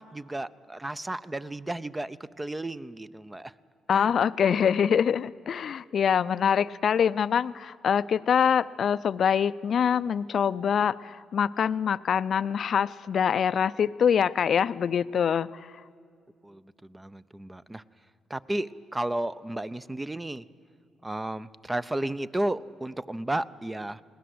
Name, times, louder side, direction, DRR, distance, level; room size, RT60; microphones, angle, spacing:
voice 1, 0.0-3.5 3.9-4.1 16.4-17.8 18.3-20.5 21.0-24.0, right 1 dB, 15° right, 15 dB, 0.5 m, -33 dB
voice 2, 3.9-15.7, left 7 dB, 55° left, 16 dB, 0.4 m, -24 dB
21.5 x 18.0 x 7.8 m, 2.3 s
cardioid pair, 90°, 0 cm